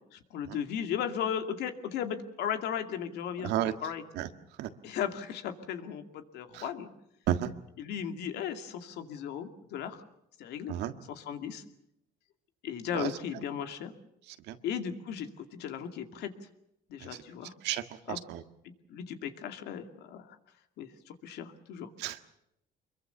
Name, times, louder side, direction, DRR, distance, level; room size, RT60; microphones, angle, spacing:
voice 1, 0.1-3.5 3.8-4.0 4.8-6.9 7.8-10.0 10.4-10.7 11.1-11.6 12.6-13.9 14.6-16.3 16.9-17.5 18.1-18.2 18.9-20.4 20.8-21.9, left 8 dB, 80° left, 7 dB, 2.4 m, -36 dB
voice 2, 3.4-3.7 4.1-4.3 4.6-4.7 6.5-6.7 7.3-7.5 10.7-10.9 12.9-13.1 14.3-14.6 17.0-17.2 17.6-18.4 22.0-22.2, right 12 dB, 90° right, 9 dB, 1.7 m, -33 dB
25.5 x 22.5 x 7.0 m, 0.81 s
cardioid pair, 110°, 17 cm